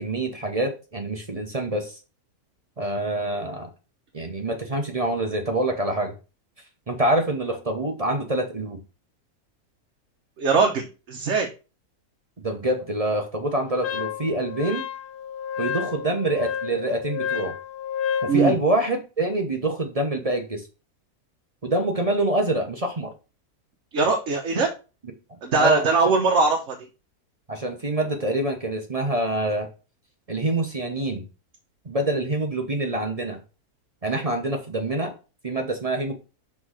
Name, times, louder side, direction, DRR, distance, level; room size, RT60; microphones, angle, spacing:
voice 1, 0.0-2.0 2.8-3.7 4.1-6.1 6.9-8.8 12.4-14.8 15.6-17.5 18.2-20.6 21.6-23.1 25.6-25.9 27.5-29.7 30.3-31.2 31.8-33.4 34.0-35.1 35.4-36.1, right 1 dB, 30° right, 4 dB, 0.7 m, -26 dB
voice 2, 10.4-11.5 18.3-18.5 23.9-24.7 25.4-26.8, right 4 dB, 55° right, 2 dB, 1.1 m, -21 dB
Wind instrument woodwind instrument, 13.8-18.4, left 8 dB, 80° left, 1.2 m, -30 dB
6.0 x 3.7 x 4.8 m, 0.32 s
omnidirectional pair, 1.6 m